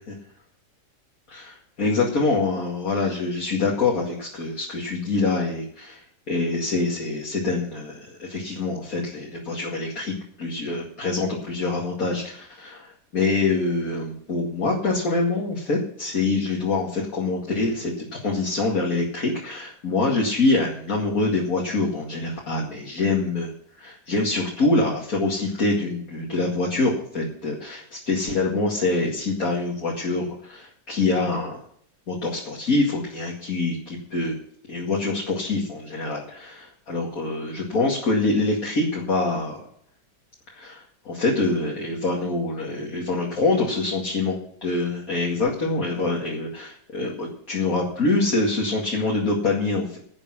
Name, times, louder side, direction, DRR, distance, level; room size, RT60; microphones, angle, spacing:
voice 1, 1.3-23.5 23.8-31.6 32.1-34.3 34.7-39.7 40.5-50.0, left 3 dB, 50° left, -3 dB, 2.7 m, -25 dB
11.0 x 8.7 x 7.4 m, 0.63 s
omnidirectional pair, 1.9 m